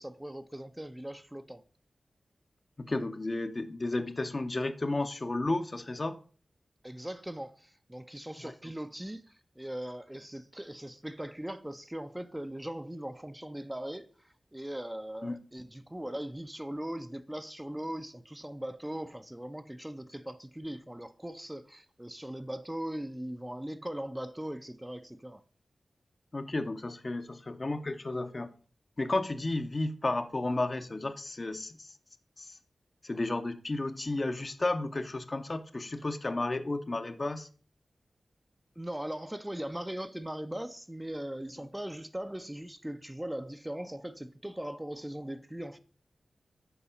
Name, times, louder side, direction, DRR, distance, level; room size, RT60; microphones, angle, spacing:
voice 1, 0.0-1.6 6.8-25.4 38.8-45.8, right 1 dB, 10° right, 0.6 m, -40 dB
voice 2, 2.8-6.2 8.4-8.5 15.2-15.4 26.3-28.5 29.0-31.9 32.4-32.6 33.0-37.5, left 2 dB, 45° left, 0.7 m, -33 dB
7.0 x 4.7 x 5.1 m
cardioid pair, 45°, 0 cm